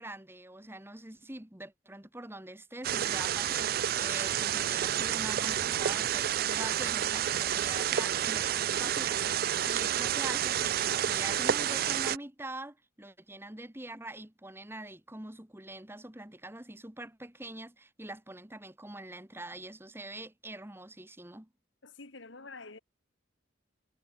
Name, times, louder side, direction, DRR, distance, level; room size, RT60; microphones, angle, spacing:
voice 1, 0.0-21.5, right 1 dB, 10° right, 1.5 m, -44 dB
sound 1, 2.8-12.2, right 10 dB, 45° right, 0.4 m, -30 dB
voice 2, 21.8-22.8, left 3 dB, 65° left, 2.1 m, -47 dB
head